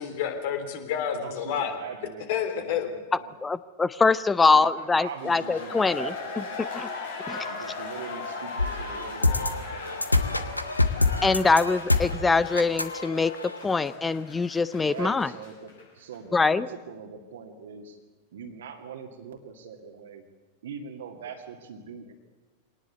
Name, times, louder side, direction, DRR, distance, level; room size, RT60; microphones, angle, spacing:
voice 1, 0.0-1.7 2.3-2.9, left 8 dB, 50° left, 7 dB, 3.4 m, -29 dB
voice 2, 1.0-3.3 4.5-6.6 7.3-10.4 11.0-11.5 14.7-18.0 18.3-20.2 20.6-22.1, right 6 dB, 60° right, 4 dB, 2.2 m, -42 dB
voice 3, 3.4-6.1 6.7-6.9 7.3-7.4 11.2-13.3 13.6-15.3 16.3-16.7, left 4 dB, 15° left, 18 dB, 0.6 m, -23 dB
sound 1, 5.0-15.8 16.1-16.2, left 4 dB, 65° left, 6.5 m, -38 dB
sound 2, 8.6-13.6, left 2 dB, 85° left, 1.3 m, -26 dB
24.0 x 18.5 x 8.2 m, 1.3 s
figure-of-eight pair, 90°, 0 cm